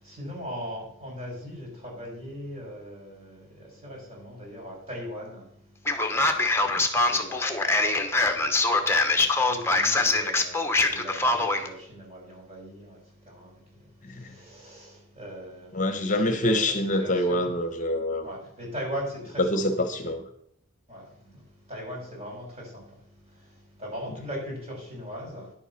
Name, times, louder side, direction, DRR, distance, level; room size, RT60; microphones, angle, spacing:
voice 1, 0.0-17.5 18.2-19.6 20.9-25.5, equal, 35° right, 5.8 m, -40 dB
Male speech man speaking, 5.9-11.7, left 2 dB, 10° left, 1.1 m, -23 dB
voice 2, 15.7-18.3 19.4-20.2, left 1 dB, 40° left, 1.0 m, -26 dB
10.5 x 8.1 x 5.7 m
head